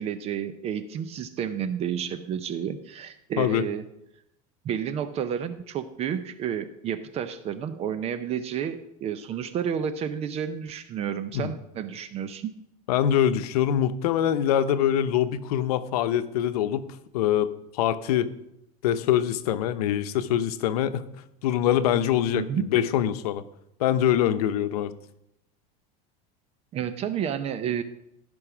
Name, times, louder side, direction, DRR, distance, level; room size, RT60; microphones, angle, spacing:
voice 1, 0.0-3.8 4.6-12.5 22.3-22.7 26.7-27.8, right 8 dB, 35° right, 12 dB, 0.6 m, -31 dB
voice 2, 12.9-16.9 17.1-18.3 18.8-21.0 21.4-22.4 22.7-23.4 23.8-24.9, left 10 dB, 85° left, 11 dB, 0.8 m, -24 dB
14.5 x 5.4 x 6.0 m, 0.82 s
supercardioid pair, 145°, 19 cm